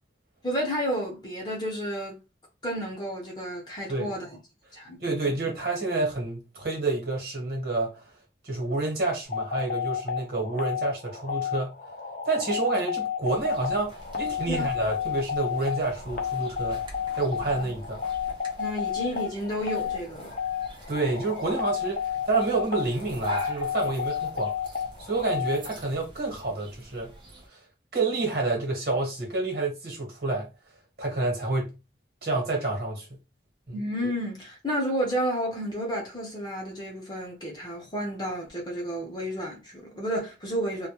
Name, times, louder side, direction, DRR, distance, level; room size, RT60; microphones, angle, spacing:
voice 1, 0.4-2.2 2.6-4.4 4.7-5.0 14.5-14.9 17.4-17.5 18.6-20.3 33.7-40.9, equal, 25° left, 0.7 m, -31 dB
voice 2, 5.0-8.0 8.4-11.8 12.2-16.8 17.2-18.0 20.9-24.5 25.0-27.1 27.5-27.6 27.9-30.5 31.0-31.8 32.2-33.1 33.7-33.8, right 3 dB, 55° right, 1.1 m, -28 dB
sound 1, 9.3-25.6, left 8 dB, 50° left, 0.4 m, -31 dB
sound 2, 13.2-27.5, right 1 dB, 25° right, 0.6 m, -44 dB
2.2 x 2.1 x 2.9 m
head